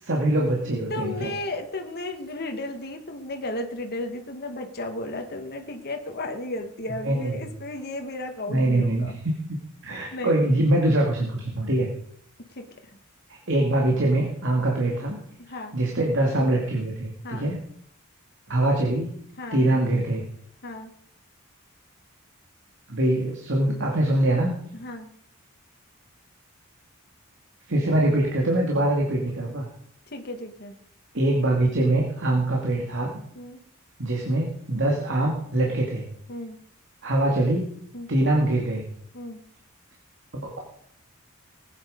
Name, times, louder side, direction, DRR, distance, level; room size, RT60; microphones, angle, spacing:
voice 1, 0.0-1.3 7.0-7.4 8.5-9.3 9.8-11.9 13.5-15.2 15.7-17.6 18.5-19.1 19.5-20.2 22.9-24.5 27.7-29.7 31.1-33.1 34.0-36.1 37.0-37.6 38.1-38.8 40.3-40.6, right 1 dB, 60° right, -1 dB, 2.4 m, -23 dB
voice 2, 0.9-9.2 10.1-10.4 12.5-12.6 15.5-15.7 17.2-17.5 19.4-19.7 20.6-20.9 24.7-25.1 30.1-30.7 33.3-33.6 36.3-36.6 37.9-38.1 39.1-39.4, left 2 dB, 50° left, 4 dB, 1.5 m, -34 dB
20.0 x 8.9 x 5.1 m, 0.68 s
head